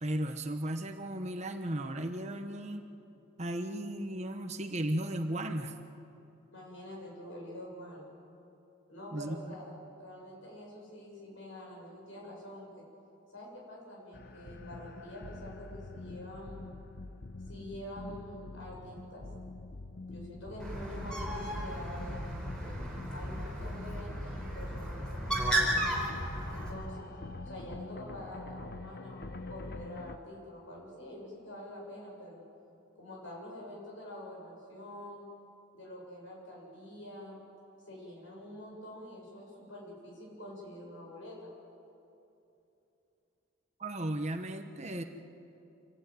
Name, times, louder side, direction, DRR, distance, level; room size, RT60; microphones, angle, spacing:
voice 1, 0.0-2.9 3.4-5.7 9.1-9.5 43.8-45.0, right 1 dB, 35° right, 6 dB, 1.1 m, -35 dB
voice 2, 6.5-8.0 8.9-12.7 13.3-16.7 17.5-19.3 20.1-22.8 23.1-25.8 26.5-27.1 27.4-32.4 32.9-35.3 35.7-37.4 37.8-41.5, left 1 dB, 70° left, -2 dB, 7.5 m, -46 dB
sound 1, 14.1-30.2, left 2 dB, 50° left, 0.8 m, -45 dB
Bird, 20.6-26.7, right 1 dB, 5° left, 4.3 m, -34 dB
27.0 x 16.0 x 9.3 m, 2.8 s
head